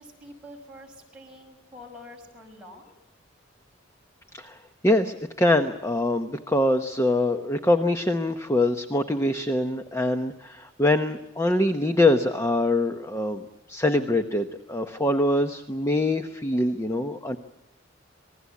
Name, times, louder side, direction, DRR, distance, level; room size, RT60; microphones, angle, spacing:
voice 1, 0.0-2.9, left 1 dB, 5° right, -1 dB, 5.7 m, -46 dB
voice 2, 4.8-13.4 13.7-17.4, left 1 dB, 15° left, 6 dB, 0.9 m, -24 dB
27.0 x 20.0 x 8.4 m, 0.90 s
head